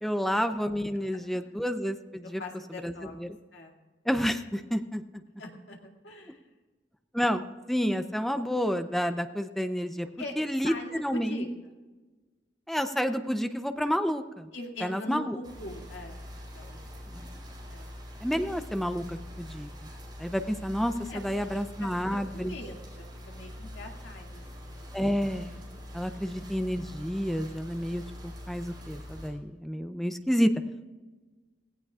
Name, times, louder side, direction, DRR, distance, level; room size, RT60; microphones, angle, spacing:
voice 1, 0.0-2.4 2.8-2.9 3.2-3.3 4.1-5.0 7.1-10.1 10.4-10.7 11.0-11.5 12.7-14.5 14.8-15.4 17.1-17.3 18.2-19.7 20.2-20.9 21.2-22.5 24.9-25.5 25.9-30.5, equal, ahead, 8 dB, 0.6 m, -29 dB
voice 2, 2.2-3.2 3.5-3.8 5.4-6.5 10.2-10.3 10.6-11.5 13.8-13.9 14.5-16.8 17.7-17.9 21.1-25.1 26.1-26.3, left 2 dB, 70° left, 1 dB, 2.2 m, -43 dB
sound 1, 15.4-29.3, left 1 dB, 25° right, 4.8 m, -44 dB
17.5 x 16.5 x 2.4 m, 1.3 s
head